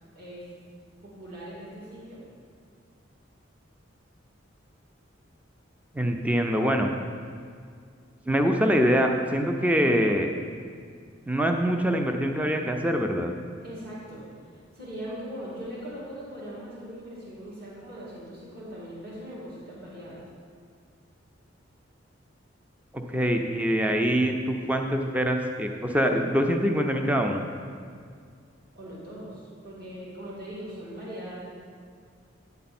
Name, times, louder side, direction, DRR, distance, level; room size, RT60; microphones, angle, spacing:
voice 1, 0.1-0.5 1.0-2.2 13.6-14.2 14.5-20.2 28.7-31.4, equal, 50° right, -8 dB, 2.3 m, -40 dB
voice 2, 5.9-6.9 8.3-10.3 11.3-13.3 23.1-27.4, equal, 10° right, 4 dB, 0.4 m, -24 dB
9.4 x 6.7 x 4.2 m, 2.1 s
head